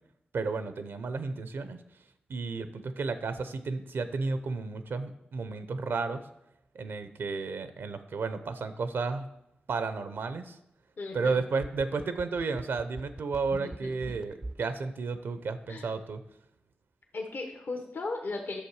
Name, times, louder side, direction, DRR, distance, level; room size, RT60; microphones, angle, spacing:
voice 1, 0.3-1.8 2.3-6.3 6.7-9.3 9.7-10.6 11.1-16.2, right 4 dB, 85° right, 11 dB, 0.7 m, -32 dB
voice 2, 11.0-11.4 13.5-14.1 15.7-15.9 17.1-18.6, left 3 dB, 70° left, 3 dB, 1.0 m, -37 dB
sound 1, 11.3-14.7 15.0-15.1, right 2 dB, 25° right, 0.4 m, -42 dB
10.0 x 6.6 x 4.8 m, 0.83 s
cardioid pair, 60°, 4 cm